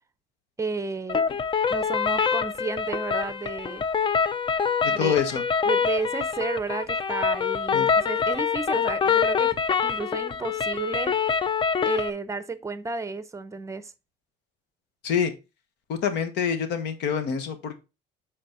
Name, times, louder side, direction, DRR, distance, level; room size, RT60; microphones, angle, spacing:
voice 1, 0.6-1.2 1.7-3.8 4.8-5.1 5.7-9.6 9.8-11.1 11.8-13.9, right 4 dB, 15° right, 0.7 m, -32 dB
sound 1, 1.1-12.1, left 6 dB, 30° left, 0.5 m, -25 dB
voice 2, 4.8-5.4 7.7-7.9 15.0-15.3 15.9-17.8, left 7 dB, 85° left, 1.4 m, -26 dB
7.9 x 4.3 x 4.3 m
cardioid pair, 110°, 17 cm